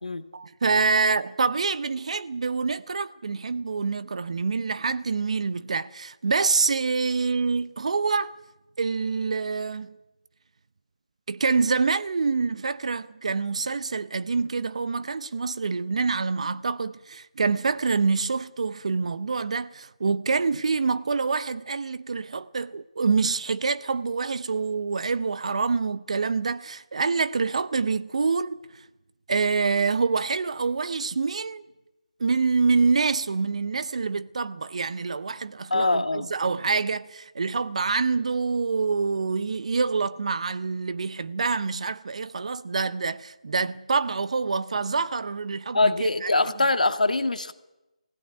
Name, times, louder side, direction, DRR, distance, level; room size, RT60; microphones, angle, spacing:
voice 1, 0.3-8.3 8.8-9.9 11.3-28.8 29.3-31.6 32.2-45.9 46.2-46.3, right 4 dB, 55° right, 0.8 m, -26 dB
voice 2, 35.7-36.3 45.7-47.5, left 2 dB, 90° left, 1.8 m, -23 dB
20.0 x 16.5 x 9.8 m
figure-of-eight pair, 160°, 4 cm